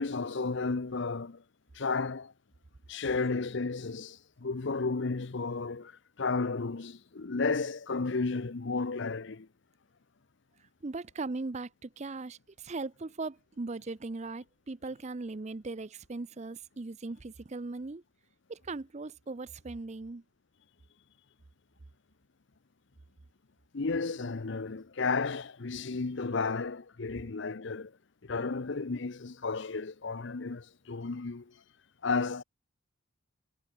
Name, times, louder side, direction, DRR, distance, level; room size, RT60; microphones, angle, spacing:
voice 1, 0.0-1.4 1.7-2.3 2.9-9.5 23.7-28.0 28.2-31.6 32.0-32.4, left 4 dB, 55° left, 0.7 m, -33 dB
voice 2, 10.8-18.0 18.5-20.2, right 3 dB, 30° right, 0.5 m, -39 dB
head